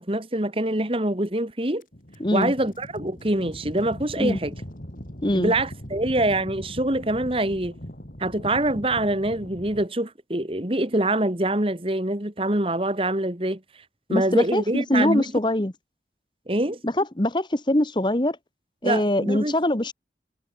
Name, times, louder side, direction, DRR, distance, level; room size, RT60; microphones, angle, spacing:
voice 1, 0.0-1.8 2.3-4.6 5.3-7.8 8.2-13.6 14.1-15.3 16.5-16.8 18.8-19.5, right 1 dB, 30° right, 2.0 m, -25 dB
sound 1, 1.8-9.9, equal, 50° left, 4.7 m, -40 dB
voice 2, 2.2-2.5 4.2-4.4 5.2-5.5 14.1-15.7 16.8-18.4 18.8-19.9, left 1 dB, 25° left, 1.2 m, -23 dB
head